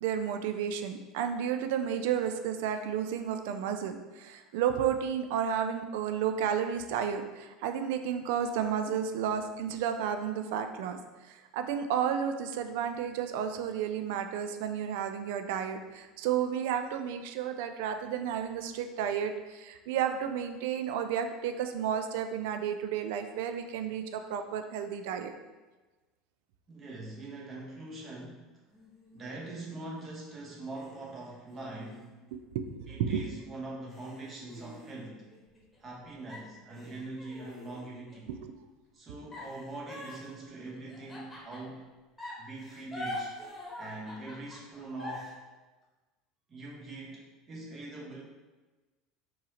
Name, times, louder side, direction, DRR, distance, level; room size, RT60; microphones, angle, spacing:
voice 1, 0.0-11.0 11.3-25.3 32.3-33.3 38.4-38.5, right 8 dB, 60° right, 7 dB, 0.3 m, -32 dB
voice 2, 26.7-28.4 29.1-32.2 32.9-35.3 35.8-38.4 38.9-41.9 42.4-43.3 43.7-45.4 46.5-48.2, right 2 dB, 30° right, -3 dB, 1.1 m, -43 dB
sound 1, 28.7-30.0 30.7-32.9 33.4-33.5 33.9-36.0 36.3-38.3 39.3-41.8 42.2-45.3, left 1 dB, 15° left, 1.2 m, -45 dB
4.4 x 3.1 x 3.0 m, 1.2 s
figure-of-eight pair, 70°, 0 cm